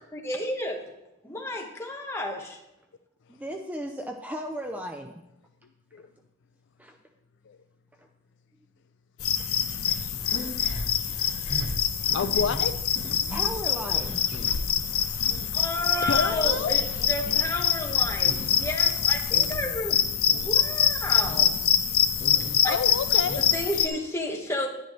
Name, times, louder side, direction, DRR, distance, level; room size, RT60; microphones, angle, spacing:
voice 1, 0.1-0.8 1.2-2.6 15.5-20.0 20.3-21.6 22.6-22.8 23.4-24.7, left 1 dB, 10° left, 0 dB, 1.3 m, -31 dB
voice 2, 3.3-5.2 6.8-7.0 8.0-8.1 11.6-11.7 12.6-12.7 13.1-14.2 15.0-15.1, equal, 5° right, 4 dB, 0.5 m, -36 dB
sound 1, 9.2-23.9, left 9 dB, 85° left, 0.8 m, -25 dB
sound 2, 9.9-16.4 16.8-18.6 18.9-19.6 19.9-20.5 20.9-21.5 21.9-23.8, equal, 30° left, 1.3 m, -39 dB
voice 3, 12.1-12.7 16.0-16.8 22.6-23.4, left 6 dB, 55° left, 11 dB, 0.4 m, -28 dB
10.5 x 10.5 x 3.2 m, 0.89 s
head